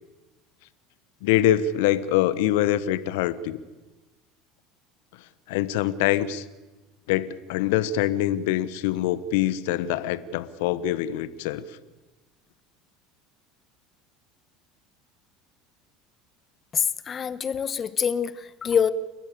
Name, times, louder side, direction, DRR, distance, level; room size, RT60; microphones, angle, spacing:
voice 1, 1.2-3.6 5.5-6.4 7.1-11.6, left 12 dB, 70° left, 15 dB, 1.3 m, -24 dB
voice 2, 16.7-18.9, left 7 dB, 35° left, 15 dB, 1.4 m, -25 dB
29.5 x 13.5 x 8.6 m, 1.2 s
hypercardioid pair, 75°, 0 cm